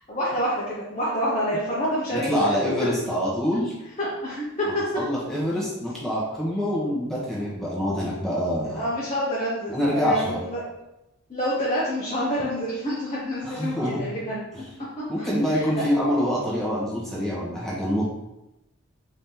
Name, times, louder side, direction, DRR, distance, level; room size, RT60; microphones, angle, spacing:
voice 1, 0.1-2.5 4.0-4.8 8.6-10.6 11.3-14.4 15.0-15.3 15.5-15.8, equal, 30° left, -7 dB, 0.9 m, -28 dB
voice 2, 2.1-3.7 4.6-8.9 9.7-10.4 13.4-14.1 15.1-18.1, equal, ahead, -7 dB, 1.2 m, -26 dB
4.8 x 2.9 x 3.7 m, 0.92 s
head